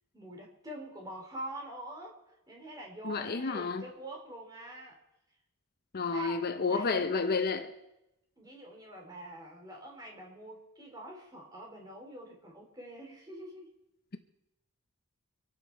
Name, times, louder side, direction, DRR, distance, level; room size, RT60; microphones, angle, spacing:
voice 1, 0.1-2.2 2.5-5.0 6.0-7.2 8.4-13.7, right 1 dB, 20° right, 3.4 m, -45 dB
voice 2, 3.0-3.8 5.9-7.7, left 4 dB, 45° left, 0.7 m, -30 dB
25.0 x 9.8 x 4.6 m
head